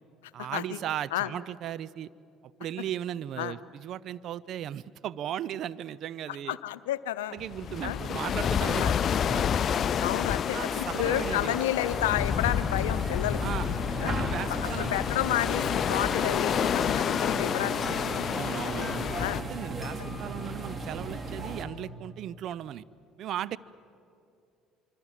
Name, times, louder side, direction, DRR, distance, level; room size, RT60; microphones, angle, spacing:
voice 1, 0.3-2.1 2.6-6.6 7.3-9.5 10.5-11.6 13.4-13.7 14.0-15.0 18.3-19.1 19.4-22.8 23.2-23.6, right 11 dB, 60° right, 19 dB, 0.5 m, -36 dB
voice 2, 6.5-7.4 7.8-8.0 8.8-8.9 10.0-13.4 14.0-14.2 14.5-18.1 18.6-18.7 19.2-19.4, left 13 dB, 85° left, 15 dB, 0.7 m, -31 dB
sound 1, 7.4-19.4, left 8 dB, 50° left, 0.6 m, -29 dB
sound 2, 11.8-21.7, right 2 dB, 30° right, 2.5 m, -37 dB
Alarm, 16.8-21.6, left 3 dB, 20° left, 1.4 m, -48 dB
25.5 x 25.5 x 7.5 m, 2.6 s
hypercardioid pair, 65°, 0 cm